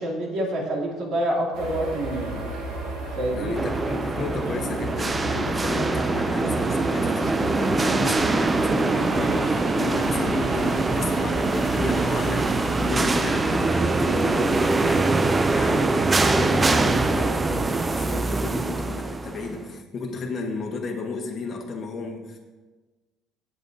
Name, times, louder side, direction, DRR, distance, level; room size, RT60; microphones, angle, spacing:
voice 1, 0.0-2.4 3.1-3.6, right 1 dB, 55° right, -2 dB, 2.5 m, -27 dB
sound 1, 1.5-17.2, right 1 dB, 80° right, 3.4 m, -34 dB
voice 2, 3.3-22.4, left 3 dB, 30° left, 0 dB, 1.2 m, -33 dB
sound 2, 3.5-19.6, right 3 dB, 15° right, 0.4 m, -23 dB
16.0 x 7.1 x 2.7 m, 1.2 s
cardioid pair, 160°, 0 cm